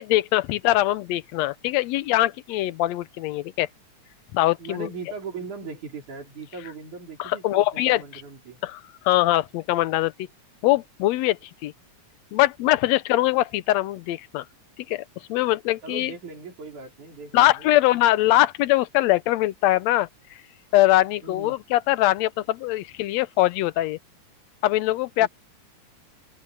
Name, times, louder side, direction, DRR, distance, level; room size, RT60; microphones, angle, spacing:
voice 1, 0.0-3.7 4.3-4.9 7.2-8.0 8.6-10.1 10.6-11.7 12.3-14.4 14.9-15.0 15.3-16.1 17.3-20.1 20.7-24.0 24.6-25.3, left 16 dB, 75° left, 1.8 m, -22 dB
voice 2, 4.6-8.6 15.8-17.8 21.2-21.5 25.2-25.3, right 4 dB, 85° right, 6.0 m, -39 dB
open air
omnidirectional pair, 3.4 m